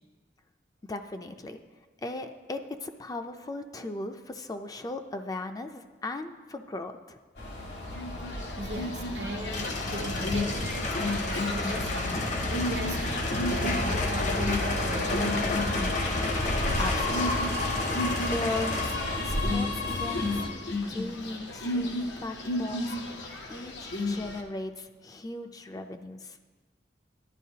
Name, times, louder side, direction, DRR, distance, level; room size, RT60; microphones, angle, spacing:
voice 1, 0.8-1.6 2.0-7.2 16.4-17.6 18.0-19.0 19.2-20.4 20.9-23.2 23.5-26.4, left 2 dB, 20° left, 0.4 m, -37 dB
Subway metro underground, 7.4-20.5, left 2 dB, 70° left, 1.5 m, -33 dB
sound 1, 7.9-24.4, left 1 dB, 90° left, 0.9 m, -33 dB
voice 2, 8.6-16.0 20.7-20.9, right 1 dB, 80° right, 0.9 m, -38 dB
sound 2, 9.5-18.9, left 2 dB, 45° left, 0.8 m, -32 dB
11.0 x 9.8 x 2.8 m
head